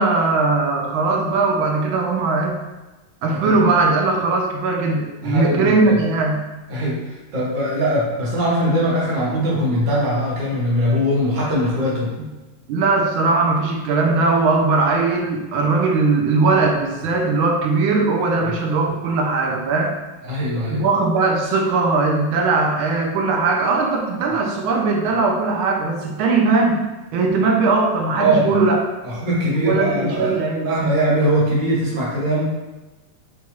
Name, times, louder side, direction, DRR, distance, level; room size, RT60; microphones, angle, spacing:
voice 1, 0.0-2.6 3.2-6.4 12.7-19.9 20.7-26.8 27.1-28.8 29.6-30.7, right 3 dB, 85° right, 2 dB, 1.4 m, -19 dB
voice 2, 5.2-6.0 6.7-12.1 18.4-18.6 20.2-20.8 28.2-28.6 29.0-30.4 30.6-32.4, equal, 40° right, -6 dB, 0.7 m, -21 dB
4.1 x 2.3 x 2.9 m, 1.1 s
omnidirectional pair, 2.2 m